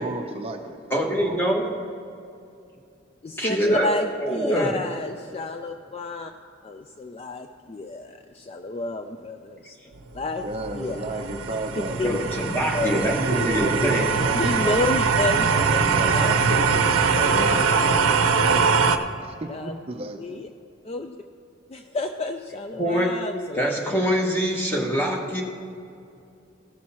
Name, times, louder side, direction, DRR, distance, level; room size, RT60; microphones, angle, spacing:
voice 1, 0.0-1.4 10.4-12.3 12.8-14.9 15.6-18.2 18.4-20.2, right 1 dB, 30° right, 4 dB, 0.5 m, -32 dB
voice 2, 0.9-1.6 3.4-4.8 12.0-14.1 22.8-23.1 23.6-25.4, equal, 10° left, -1 dB, 1.3 m, -24 dB
voice 3, 3.2-6.3 6.7-9.8 10.1-10.4 10.7-11.2 12.0-12.2 12.7-12.9 13.8-13.9 14.3-16.7 19.5-19.7 20.2-20.5 20.8-21.2 21.7-23.8, left 2 dB, 30° left, 6 dB, 0.3 m, -30 dB
sound 1, 10.1-19.0, right 5 dB, 80° right, 0.6 m, -22 dB
16.0 x 6.1 x 4.3 m, 2.5 s
head